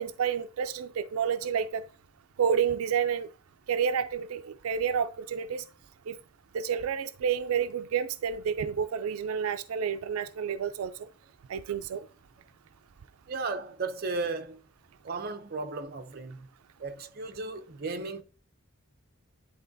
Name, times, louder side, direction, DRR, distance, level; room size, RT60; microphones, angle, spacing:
voice 1, 0.0-1.8 2.4-3.3 3.7-5.6 6.1-6.2 6.5-11.1 11.5-12.1, right 7 dB, 85° right, 0.4 m, -29 dB
voice 2, 13.3-14.6 15.0-16.5 16.8-18.2, right 3 dB, 45° right, 0.6 m, -35 dB
10.5 x 3.7 x 2.6 m
head